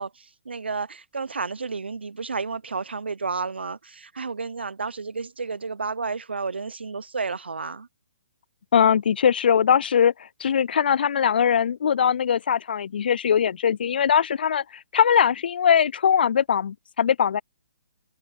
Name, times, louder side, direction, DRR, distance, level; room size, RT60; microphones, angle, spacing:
voice 1, 0.0-7.9, right 4 dB, 85° right, 1.0 m, -31 dB
voice 2, 8.7-14.6 14.9-17.4, left 8 dB, 65° left, 0.4 m, -21 dB
hypercardioid pair, 140°, 6 cm